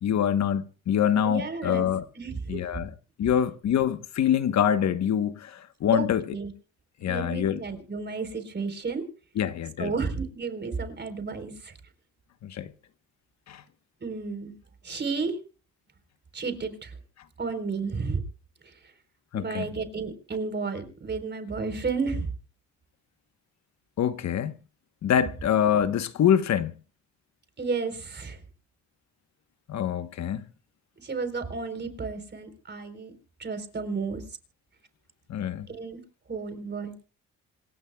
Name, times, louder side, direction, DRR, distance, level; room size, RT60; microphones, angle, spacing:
voice 1, 0.0-2.0 2.5-2.9 3.2-6.2 7.0-7.6 9.4-9.9 12.4-12.7 13.5-13.6 19.3-19.7 24.0-24.6 25.0-26.7 29.7-30.4 35.3-35.7, left 9 dB, 65° left, 1.2 m, -25 dB
voice 2, 1.2-2.6 5.9-6.1 6.3-6.5 7.0-9.0 9.8-11.7 14.0-14.5 14.8-15.4 16.3-17.0 17.4-18.2 18.6-18.7 19.3-22.3 27.6-28.4 31.0-33.1 33.4-34.2 35.7-36.0 36.3-36.9, right 4 dB, 35° right, 4.1 m, -32 dB
27.0 x 16.0 x 2.3 m
cardioid pair, 90°, 30 cm